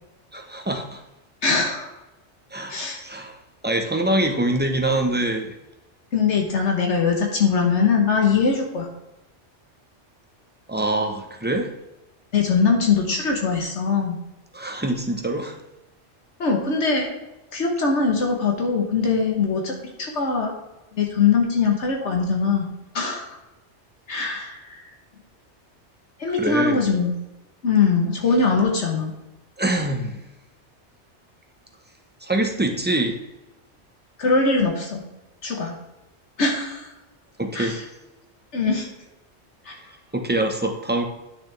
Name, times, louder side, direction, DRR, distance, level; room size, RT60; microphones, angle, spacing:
voice 1, 0.3-1.0 2.5-3.4 3.6-5.6 10.7-11.7 14.5-15.6 26.4-26.8 29.6-30.2 32.2-33.2 37.4-37.9 39.7-39.8 40.1-41.1, right 1 dB, 10° right, 4 dB, 0.9 m, -24 dB
voice 2, 1.4-1.9 2.7-3.0 6.1-8.9 12.3-14.2 16.4-17.1 17.5-20.5 20.9-22.7 22.9-23.3 24.1-24.8 26.2-27.1 27.6-29.1 34.2-35.0 35.4-35.7 36.4-36.9 37.5-37.8 38.5-38.9 39.6-39.7, left 5 dB, 80° left, 1 dB, 1.5 m, -21 dB
11.0 x 6.7 x 3.4 m, 0.98 s
omnidirectional pair, 1.2 m